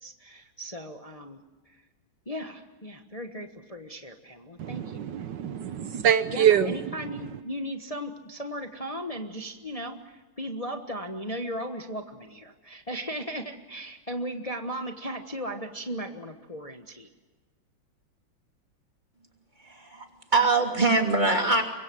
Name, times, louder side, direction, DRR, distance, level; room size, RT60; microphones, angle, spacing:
voice 1, 0.0-1.4 1.7-1.8 2.3-5.0 6.3-17.1, equal, 20° left, 5 dB, 1.2 m, -37 dB
voice 2, 4.6-6.9, right 9 dB, 65° right, 12 dB, 1.5 m, -24 dB
voice 3, 19.6-20.1 20.3-21.6, right 3 dB, 20° right, 3 dB, 2.9 m, -23 dB
25.5 x 23.0 x 7.7 m, 1.3 s
omnidirectional pair, 2.2 m